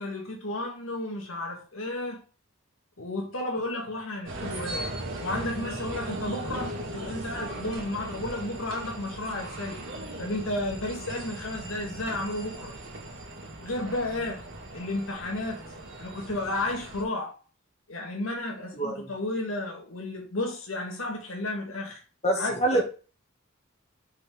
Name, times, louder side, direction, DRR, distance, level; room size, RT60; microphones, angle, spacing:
voice 1, 0.0-2.2 3.0-4.9 5.2-9.8 10.2-12.7 13.6-14.4 14.7-15.6 16.0-17.4 17.9-22.0 22.4-22.8, left 2 dB, 90° left, 1.9 m, -32 dB
sound 1, 4.3-17.0, right 1 dB, 75° right, 2.4 m, -38 dB
voice 2, 18.7-19.1 22.2-22.8, right 2 dB, 30° left, 1.8 m, -25 dB
6.1 x 5.2 x 3.6 m
head